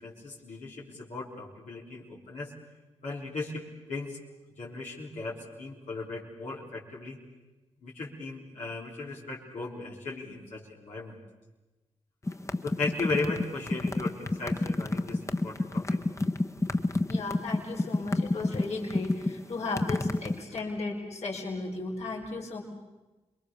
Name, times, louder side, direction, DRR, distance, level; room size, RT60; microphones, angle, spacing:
voice 1, 0.0-2.5 3.0-3.6 3.9-4.2 4.6-7.2 7.8-11.2 12.6-16.0, left 3 dB, 90° left, -6 dB, 4.2 m, -36 dB
sound 1, 12.3-20.4, left 2 dB, 25° left, 1.2 m, -29 dB
voice 2, 17.1-22.6, left 3 dB, 70° left, -1 dB, 4.5 m, -35 dB
27.0 x 22.5 x 7.0 m, 1.1 s
cardioid pair, 50°, 12 cm